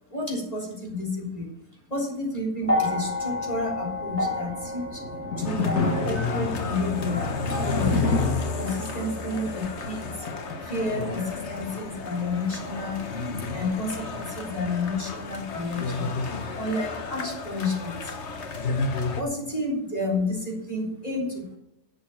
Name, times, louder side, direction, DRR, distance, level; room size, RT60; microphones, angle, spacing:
voice 1, 0.1-1.5 1.9-5.0 5.4-7.2 7.5-8.1 8.6-10.3 10.6-13.1 13.5-16.1 16.5-18.3 19.2-21.6, left 2 dB, 25° left, -1 dB, 3.6 m, -30 dB
sound 1, 2.6-11.0 12.0-12.1, left 1 dB, 5° right, 2.2 m, -33 dB
sound 2, 4.7-12.0, left 4 dB, 75° left, 2.3 m, -30 dB
sound 3, 5.4-19.2, left 3 dB, 50° left, 1.3 m, -32 dB
11.5 x 7.2 x 7.4 m, 0.82 s
omnidirectional pair, 1.6 m